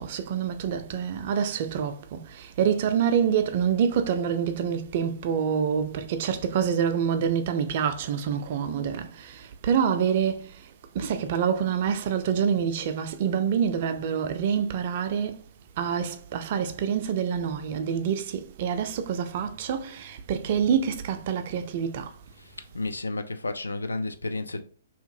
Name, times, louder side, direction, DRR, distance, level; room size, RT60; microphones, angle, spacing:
voice 1, 0.0-10.7 10.9-15.4 15.8-22.1, right 7 dB, 45° right, 0.4 m, -26 dB
voice 2, 22.7-24.6, left 2 dB, 75° left, 0.3 m, -31 dB
2.8 x 2.5 x 2.6 m
figure-of-eight pair, 120°, 0 cm